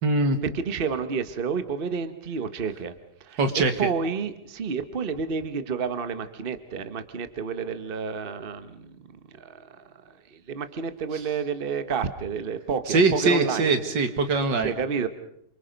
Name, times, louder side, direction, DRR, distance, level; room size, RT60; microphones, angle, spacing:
voice 1, 0.0-0.4 3.4-3.7 12.9-14.7, right 3 dB, 85° right, 8 dB, 2.5 m, -22 dB
voice 2, 0.5-2.9 3.2-9.1 9.3-9.8 10.3-13.7 14.6-15.1, right 6 dB, 35° right, 11 dB, 1.3 m, -30 dB
28.0 x 25.0 x 5.3 m, 0.71 s
omnidirectional pair, 1.9 m